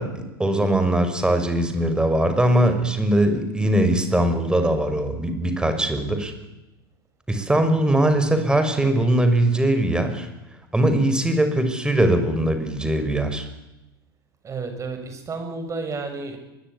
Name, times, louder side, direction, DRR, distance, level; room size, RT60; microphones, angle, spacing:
voice 1, 0.0-6.3 7.3-10.3 10.7-13.5, right 1 dB, 5° right, 8 dB, 5.6 m, -21 dB
voice 2, 14.4-16.4, right 4 dB, 25° right, 7 dB, 7.1 m, -31 dB
24.5 x 22.0 x 9.8 m, 0.96 s
hypercardioid pair, 95°, 12 cm